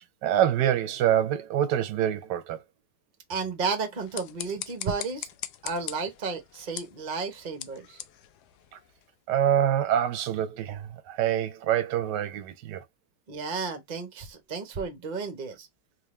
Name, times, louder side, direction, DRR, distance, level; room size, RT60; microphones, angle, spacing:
voice 1, 0.2-2.6 9.3-12.8, right 10 dB, 75° right, 1.1 m, -25 dB
voice 2, 3.3-5.3 5.6-8.0 13.3-15.7, right 4 dB, 40° right, 0.7 m, -32 dB
sound 1, 3.9-9.2, left 12 dB, 75° left, 1.0 m, -42 dB
3.7 x 2.8 x 3.0 m
omnidirectional pair, 2.0 m